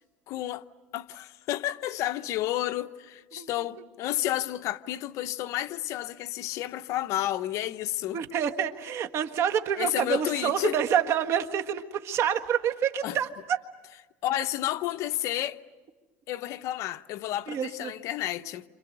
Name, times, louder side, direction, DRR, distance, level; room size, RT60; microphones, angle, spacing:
voice 1, 0.3-0.6 0.9-8.2 9.8-10.8 13.0-13.2 14.2-15.6 16.3-18.6, left 14 dB, 55° left, 0.8 m, -31 dB
voice 2, 8.1-13.6 17.5-17.9, right 8 dB, 50° right, 1.7 m, -28 dB
29.0 x 27.0 x 6.7 m
cardioid pair, 130°, 6 cm